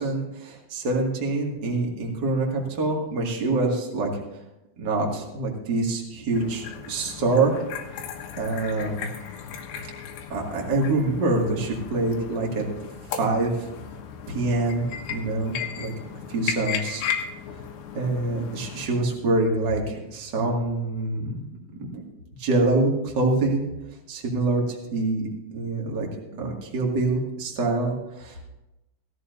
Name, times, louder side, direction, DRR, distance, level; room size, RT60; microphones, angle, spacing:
voice 1, 0.0-4.1 4.8-7.6 8.4-9.1 10.3-12.6 13.2-13.7 14.3-15.9 16.3-17.0 17.9-21.4 21.7-22.0 22.4-23.7 24.1-26.1 26.4-28.5, right 2 dB, 45° right, -1 dB, 1.3 m, -25 dB
sound 1, 6.3-18.9, left 7 dB, 80° left, 3.8 m, -36 dB
17.0 x 14.0 x 2.7 m, 0.95 s
omnidirectional pair, 5.6 m